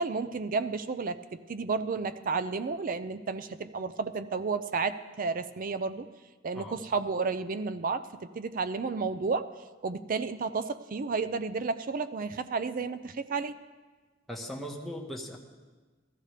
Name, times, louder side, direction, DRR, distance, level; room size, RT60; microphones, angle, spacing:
voice 1, 0.0-6.1 6.4-9.5 9.8-13.5, right 4 dB, 45° right, 12 dB, 0.4 m, -32 dB
voice 2, 14.3-15.4, equal, ahead, -2 dB, 1.2 m, -38 dB
15.0 x 13.5 x 3.3 m, 1.3 s
head